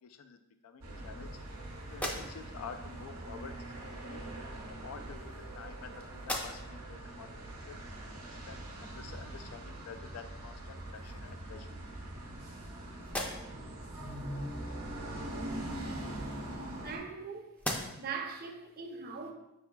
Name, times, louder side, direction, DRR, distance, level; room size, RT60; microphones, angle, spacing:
voice 1, 0.0-0.4 0.6-1.3 1.9-4.3 4.7-7.8 8.3-11.7, left 6 dB, 75° left, 9 dB, 0.4 m, -49 dB
sound 1, 0.8-17.0, right 1 dB, 70° right, 0.9 m, -43 dB
sound 2, 1.9-2.7 3.8-4.0 4.9-5.8 6.2-6.9 7.4-7.5 10.1-10.3 10.7-11.4 12.0-12.7 13.0-13.7 15.7-17.2 17.5-18.2, left 1 dB, 5° left, 0.4 m, -41 dB
voice 2, 16.8-17.5 18.0-19.3, right 5 dB, 45° right, 3 dB, 0.5 m, -40 dB
5.5 x 3.4 x 2.3 m, 0.94 s
head